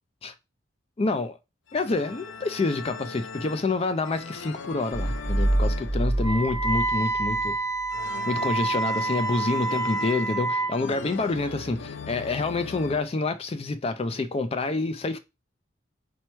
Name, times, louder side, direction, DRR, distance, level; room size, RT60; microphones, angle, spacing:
voice 1, 1.0-1.4 1.7-7.6 8.3-15.2, left 3 dB, 30° left, 0.4 m, -27 dB
sound 1, 1.7-13.0, left 4 dB, 80° left, 0.6 m, -40 dB
sound 2, 4.9-7.6, right 1 dB, 40° right, 1.2 m, -26 dB
Wind instrument woodwind instrument, 6.2-10.8, right 3 dB, 15° right, 0.7 m, -28 dB
4.5 x 2.2 x 4.3 m
head